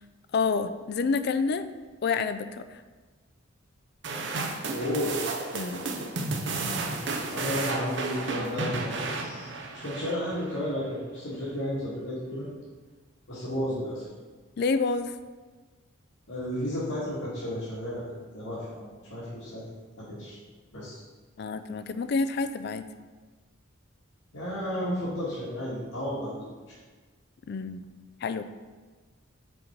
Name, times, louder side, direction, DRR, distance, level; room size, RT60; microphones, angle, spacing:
voice 1, 0.3-1.7 2.0-2.6 5.5-5.9 14.6-15.1 21.4-22.9 27.5-27.9 28.2-28.4, left 4 dB, 50° left, 11 dB, 0.3 m, -28 dB
sound 1, 4.0-10.6, right 3 dB, 55° right, 0.7 m, -32 dB
voice 2, 4.7-5.2 7.3-12.5 13.3-14.1 16.3-18.0 18.3-19.7 20.0-20.4 20.7-21.0 24.3-26.8, equal, 80° left, -10 dB, 1.8 m, -33 dB
6.4 x 4.2 x 4.5 m, 1.3 s
head